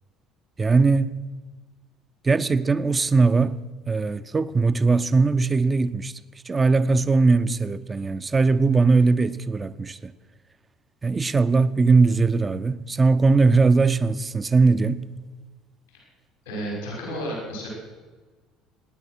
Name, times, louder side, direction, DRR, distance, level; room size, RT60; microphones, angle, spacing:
voice 1, 0.6-1.2 2.2-3.6 3.9-6.1 6.4-10.1 11.0-15.1, right 4 dB, 25° right, 0.8 m, -20 dB
voice 2, 16.5-17.7, equal, 85° left, 5.3 m, -32 dB
23.5 x 9.9 x 6.2 m
hypercardioid pair, 60°, 0 cm